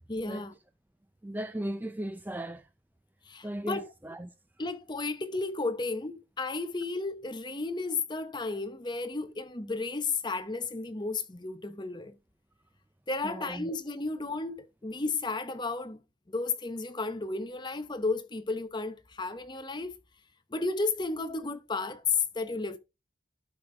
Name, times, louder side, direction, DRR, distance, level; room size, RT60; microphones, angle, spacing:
voice 1, 0.1-0.6 3.3-3.9 4.6-12.1 13.1-16.0 16.3-20.0 20.5-22.8, left 3 dB, 25° left, 0.8 m, -33 dB
voice 2, 1.2-2.7 3.4-4.3 13.2-13.7, right 1 dB, 10° right, 0.4 m, -37 dB
12.0 x 5.2 x 3.3 m
head